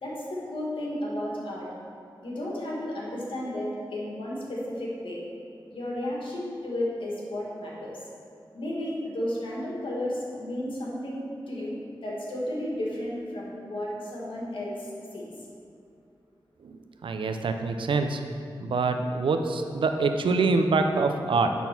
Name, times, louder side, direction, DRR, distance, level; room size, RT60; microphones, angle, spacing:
voice 1, 0.0-1.7 2.2-5.2 5.7-8.0 8.5-15.3, left 1 dB, 75° left, -4 dB, 1.9 m, -33 dB
voice 2, 16.6-18.2 18.6-21.5, right 3 dB, 75° right, 6 dB, 0.6 m, -25 dB
9.2 x 3.9 x 5.9 m, 2.5 s
cardioid pair, 55°, 9 cm